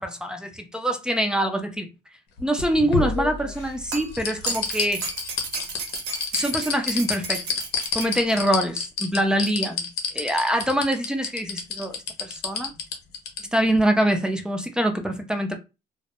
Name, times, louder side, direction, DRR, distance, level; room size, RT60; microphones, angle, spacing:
voice 1, 0.0-1.9 2.4-5.1 6.3-7.4 7.9-9.9 10.1-12.7 13.5-15.6, right 1 dB, 5° right, 0.4 m, -24 dB
sound 1, 2.4-3.7 4.1-13.4 13.8-13.9, left 5 dB, 80° left, 0.7 m, -28 dB
sound 2, 3.5-8.4 9.5-9.6, right 4 dB, 80° right, 0.7 m, -34 dB
2.1 x 2.0 x 2.9 m
cardioid pair, 110°, 17 cm